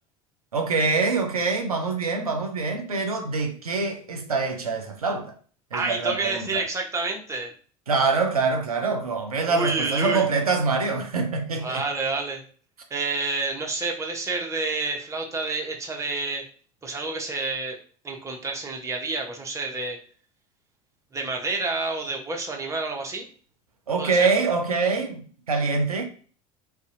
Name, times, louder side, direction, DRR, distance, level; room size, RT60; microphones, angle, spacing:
voice 1, 0.5-5.3 5.7-6.6 7.9-11.8 23.9-26.0, right 4 dB, 85° right, 0.4 m, -25 dB
voice 2, 5.7-7.5 9.5-10.3 11.6-12.4 12.9-16.4 16.8-17.8 18.0-20.0 21.1-23.2 24.0-24.3, right 3 dB, 15° right, 0.6 m, -29 dB
2.6 x 2.1 x 2.5 m
figure-of-eight pair, 70°, 18 cm